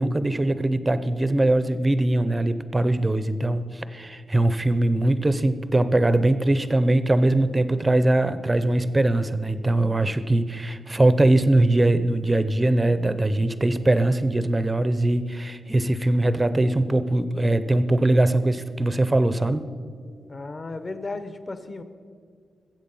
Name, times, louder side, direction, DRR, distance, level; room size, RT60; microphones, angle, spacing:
voice 1, 0.0-19.6, right 2 dB, 15° right, 12 dB, 0.6 m, -21 dB
voice 2, 20.3-21.8, left 3 dB, 30° left, 10 dB, 0.9 m, -34 dB
22.0 x 7.8 x 5.5 m, 2.1 s
wide cardioid pair, 160°, 0 cm